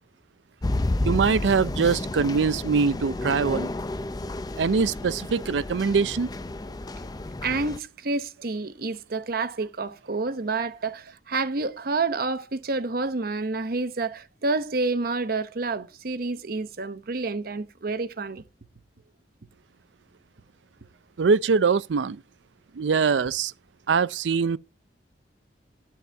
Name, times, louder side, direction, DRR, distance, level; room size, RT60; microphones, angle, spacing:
sound 1, 0.6-7.8, left 2 dB, 20° left, 0.5 m, -31 dB
voice 1, 1.0-3.7 4.6-6.3 21.2-22.2 22.7-23.5 23.9-24.6, right 5 dB, 85° right, 0.5 m, -23 dB
voice 2, 7.4-18.4, right 3 dB, 55° right, 0.8 m, -29 dB
13.0 x 9.6 x 3.4 m
head